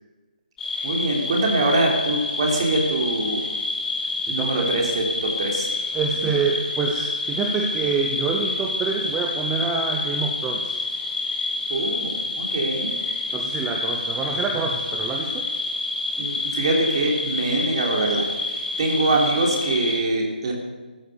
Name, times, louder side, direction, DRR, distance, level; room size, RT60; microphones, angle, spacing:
sound 1, 0.6-20.0, left 3 dB, 10° left, 2.5 m, -28 dB
voice 1, 0.8-3.4 4.3-5.7 6.2-6.3 11.7-12.9 16.2-18.3 18.8-20.5, right 2 dB, 35° right, 0 dB, 3.4 m, -23 dB
voice 2, 4.3-4.7 5.9-10.8 13.3-15.5, right 5 dB, 5° right, 2 dB, 0.7 m, -27 dB
14.5 x 14.0 x 6.8 m, 1.3 s
hypercardioid pair, 175°, 5 cm